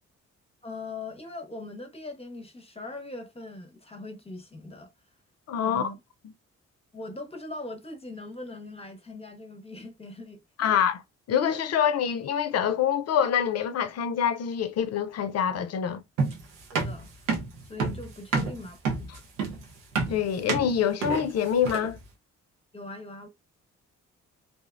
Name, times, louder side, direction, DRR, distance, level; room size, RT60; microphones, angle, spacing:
voice 1, 0.6-4.9 5.6-6.0 6.9-10.7 16.7-17.4 17.7-18.8 22.7-23.3, left 2 dB, 20° left, 0.7 m, -41 dB
voice 2, 5.5-5.8 10.6-11.0 11.3-16.0 20.1-22.0, left 8 dB, 55° left, 0.5 m, -25 dB
sound 1, 16.2-22.0, right 4 dB, 90° right, 0.7 m, -29 dB
2.5 x 2.1 x 2.4 m
supercardioid pair, 60°, 31 cm